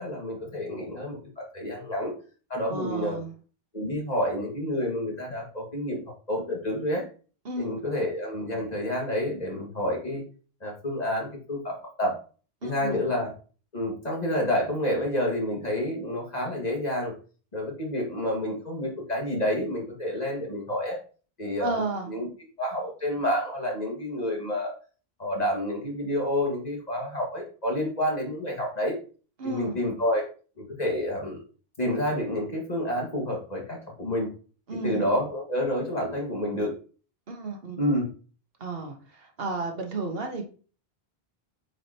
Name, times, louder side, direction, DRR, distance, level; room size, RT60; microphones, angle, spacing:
voice 1, 0.0-2.1 2.5-3.2 3.7-7.0 7.6-10.2 10.6-12.2 12.6-13.3 13.7-17.1 17.5-21.0 21.4-21.8 22.1-22.3 22.6-24.7 25.2-29.0 29.4-30.2 30.6-31.4 31.8-34.3 34.8-36.7 37.8-38.1, left 1 dB, 40° left, -1 dB, 2.1 m, -29 dB
voice 2, 2.7-3.3 7.4-7.7 12.6-13.0 21.6-22.1 29.4-29.8 34.7-35.1 37.3-37.8 38.6-40.5, right 3 dB, 70° right, 3 dB, 1.5 m, -33 dB
8.2 x 5.1 x 2.9 m, 0.39 s
omnidirectional pair, 1.0 m